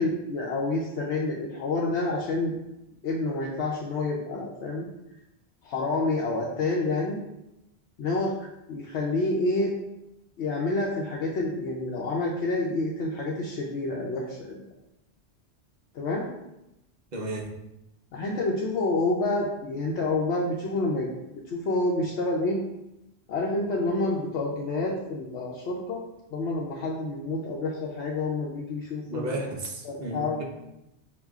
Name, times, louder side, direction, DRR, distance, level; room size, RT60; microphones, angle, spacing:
voice 1, 0.0-2.6 3.0-4.9 5.6-7.2 8.0-8.3 8.7-9.7 10.4-14.6 15.9-16.3 18.1-21.1 21.5-22.6 23.3-26.0 26.3-29.3 29.8-30.4, left 2 dB, 80° left, -3 dB, 0.9 m, -28 dB
voice 2, 17.1-17.5 29.1-30.4, right 2 dB, 45° right, -1 dB, 0.8 m, -33 dB
6.7 x 2.3 x 2.3 m, 0.91 s
omnidirectional pair, 1.1 m